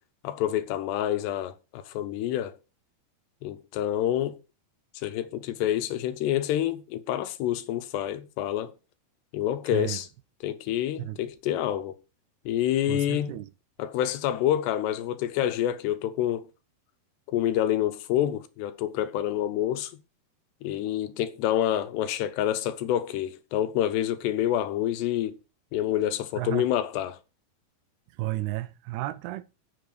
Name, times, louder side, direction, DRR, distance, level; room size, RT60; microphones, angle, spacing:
voice 1, 0.2-2.6 3.4-4.4 5.0-8.7 9.3-10.1 10.4-11.9 12.5-13.4 13.8-16.5 17.3-19.9 20.6-25.3 25.7-27.2, left 11 dB, 85° left, 3.1 m, -27 dB
voice 2, 9.7-10.0 11.0-11.2 12.9-13.5 26.4-26.7 28.2-29.4, right 17 dB, 80° right, 2.5 m, -32 dB
8.0 x 7.9 x 6.7 m
omnidirectional pair, 4.7 m